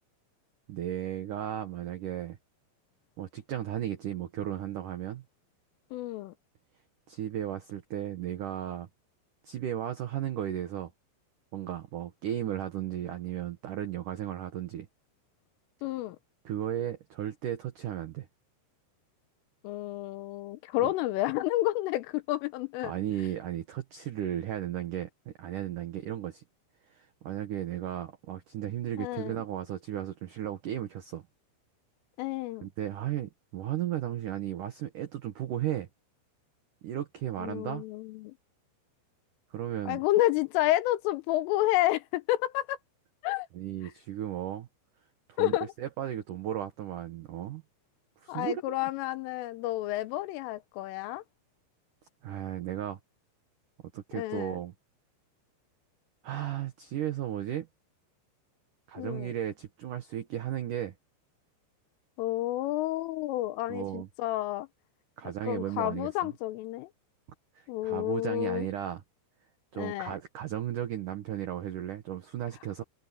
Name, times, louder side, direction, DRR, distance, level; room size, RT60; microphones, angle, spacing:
voice 1, 0.7-2.4 3.2-5.2 7.1-8.9 9.4-10.9 11.5-14.9 16.4-18.3 20.8-20.9 22.8-26.4 26.9-31.2 32.6-35.9 36.8-37.8 39.5-40.0 43.5-44.7 45.3-47.6 48.2-48.7 52.2-53.0 53.9-54.7 56.2-57.7 58.9-60.9 63.7-64.1 65.2-66.3 67.5-69.0 69.7-72.8, right 11 dB, 85° right, 1.8 m, -35 dB
voice 2, 5.9-6.3 15.8-16.2 19.6-22.9 29.0-29.4 32.2-32.7 37.4-38.3 39.9-42.8 43.2-43.5 45.4-45.7 48.3-51.2 54.1-54.6 59.0-59.3 62.2-64.7 65.4-66.9 67.7-68.7 69.8-70.2, left 16 dB, 85° left, 3.6 m, -30 dB
omnidirectional pair, 5.6 m